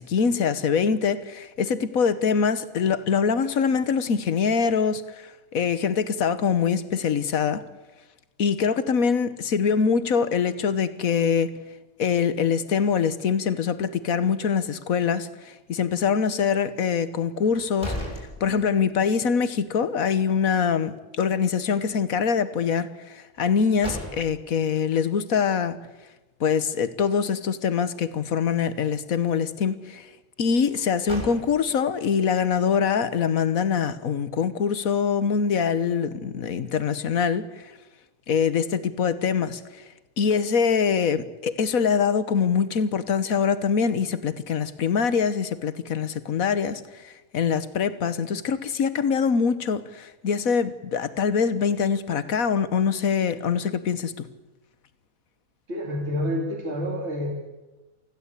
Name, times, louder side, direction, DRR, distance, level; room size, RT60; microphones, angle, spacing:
voice 1, 0.0-7.6 8.4-11.5 12.0-17.9 18.4-25.8 26.4-30.1 30.4-37.7 38.3-39.8 40.2-54.3, left 6 dB, 80° left, 1.6 m, -24 dB
sound 1, 17.4-19.1 19.4-19.5 23.4-24.6 30.7-31.9, equal, 20° left, 6.5 m, -36 dB
voice 2, 55.7-57.3, equal, 50° right, 3.2 m, -28 dB
25.0 x 15.5 x 8.3 m
omnidirectional pair, 1.5 m